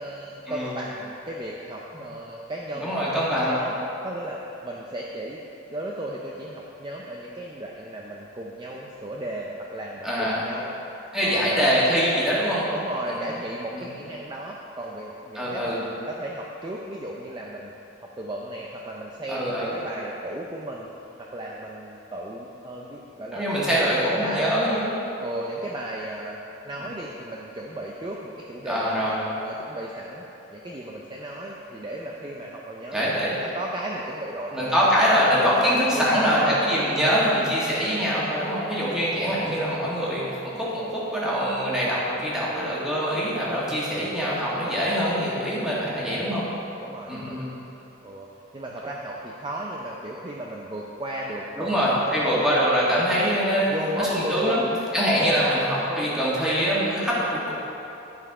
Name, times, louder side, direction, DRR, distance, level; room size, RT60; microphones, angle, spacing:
voice 1, 0.0-3.8 4.0-5.4 5.7-11.9 12.8-17.7 18.0-20.9 21.2-24.5 25.2-26.4 26.6-29.1 29.4-35.1 35.4-36.6 37.1-37.4 39.4-39.6 46.0-46.4 46.8-47.4 48.0-48.3 48.5-52.4 53.7-54.8 55.2-56.1, right 1 dB, 25° right, -2 dB, 0.5 m, -35 dB
voice 2, 2.8-3.6 10.0-10.4 11.1-12.6 13.1-13.3 13.7-13.9 15.3-15.8 19.3-19.7 23.3-24.8 28.7-29.3 32.9-33.4 34.5-46.5 47.1-47.5 51.6-53.7 54.0-54.6 54.9-57.5, equal, 5° right, -8 dB, 1.7 m, -24 dB
10.5 x 5.7 x 4.8 m, 3.0 s
head